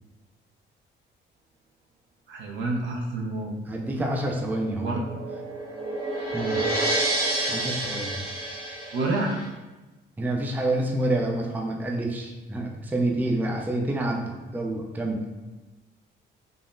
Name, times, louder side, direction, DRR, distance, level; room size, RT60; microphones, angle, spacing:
voice 1, 2.3-3.5 4.8-5.0 8.9-9.4, right 2 dB, 70° right, 0 dB, 0.6 m, -28 dB
voice 2, 3.7-5.0 6.3-6.6 7.5-8.2 10.2-15.3, right 1 dB, 10° right, 0 dB, 0.3 m, -28 dB
sound 1, 4.7-9.5, right 2 dB, 50° right, 1.4 m, -29 dB
3.6 x 2.0 x 2.5 m, 1.1 s
cardioid pair, 90°, 20 cm